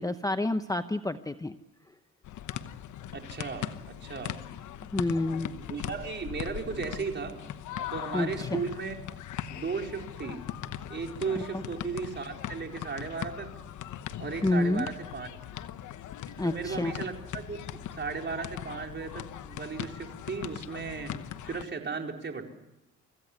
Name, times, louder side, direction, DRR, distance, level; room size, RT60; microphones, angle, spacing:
voice 1, 0.0-1.6 4.8-5.5 8.1-8.6 11.5-11.6 14.4-14.9 16.4-16.9, left 2 dB, 10° left, 9 dB, 0.9 m, -28 dB
sound 1, 2.2-21.6, left 11 dB, 75° left, 1.1 m, -40 dB
voice 2, 3.1-4.4 5.7-7.4 7.9-9.0 9.5-10.4 10.9-13.5 14.2-15.3 16.4-21.1 21.4-22.4, right 5 dB, 35° right, 2 dB, 4.5 m, -36 dB
25.0 x 15.5 x 9.8 m, 0.93 s
cardioid pair, 90°, 30 cm